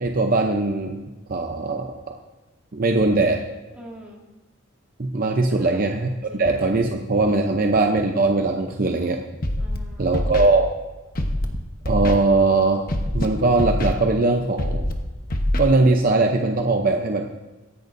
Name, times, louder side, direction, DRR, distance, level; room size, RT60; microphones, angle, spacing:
voice 1, 0.0-1.0 1.3-1.9 2.7-3.4 5.0-9.2 10.0-10.7 11.9-12.8 13.1-14.8 15.6-17.3, right 3 dB, 40° right, 3 dB, 0.7 m, -20 dB
voice 2, 3.7-4.2 5.5-5.8 6.3-6.5 9.6-10.4, equal, 5° right, -6 dB, 2.8 m, -43 dB
Scratching (performance technique), 9.4-9.8 10.1-10.5 11.1-11.5 11.8-12.1 12.9-13.3 13.6-13.9 14.6-14.9 15.3-15.6, left 1 dB, 40° left, 1.1 m, -23 dB
23.5 x 10.5 x 2.7 m, 1.2 s
head